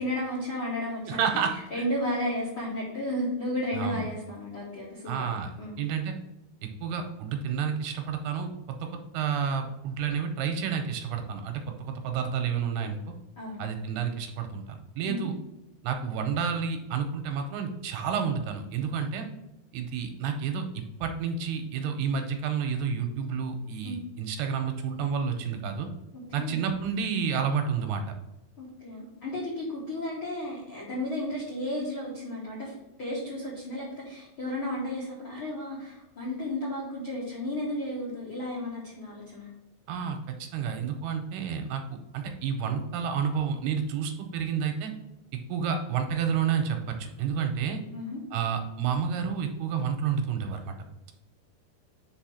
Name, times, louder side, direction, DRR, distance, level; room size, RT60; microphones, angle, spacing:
voice 1, 0.0-5.2 5.6-5.8 13.4-13.7 15.0-15.3 23.8-24.0 26.3-26.6 28.6-39.5 47.9-48.2, left 1 dB, 60° left, -5 dB, 1.4 m, -33 dB
voice 2, 1.1-1.8 3.7-4.1 5.1-5.5 5.8-6.1 6.8-8.5 9.1-13.0 13.6-15.3 15.8-19.3 19.7-25.9 26.3-28.0 39.9-44.9 45.5-47.8 48.3-50.7, right 7 dB, 85° right, 5 dB, 2.6 m, -30 dB
5.6 x 4.3 x 6.1 m, 0.97 s
omnidirectional pair, 4.8 m